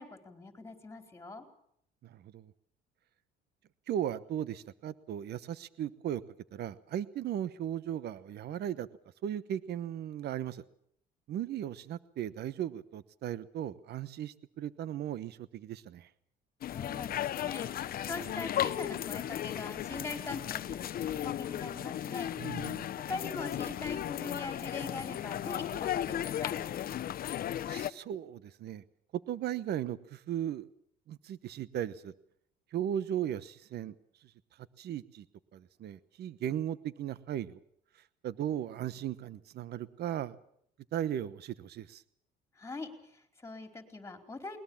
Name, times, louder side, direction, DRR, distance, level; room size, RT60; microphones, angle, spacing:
voice 1, 0.0-1.4 16.7-22.3 23.1-26.8 42.6-44.6, left 3 dB, 15° left, 6 dB, 4.5 m, -42 dB
voice 2, 2.0-2.5 3.9-6.2 6.5-8.9 9.2-10.6 11.3-16.1 22.4-22.9 27.7-28.8 29.3-30.7 31.1-32.1 32.7-33.9 34.8-35.2 35.5-37.6 38.2-40.3 40.9-42.0, right 10 dB, 55° right, 16 dB, 1.1 m, -37 dB
sound 1, 16.6-27.9, left 11 dB, 50° left, 0.9 m, -35 dB
21.0 x 21.0 x 7.2 m, 0.69 s
cardioid pair, 105°, 20 cm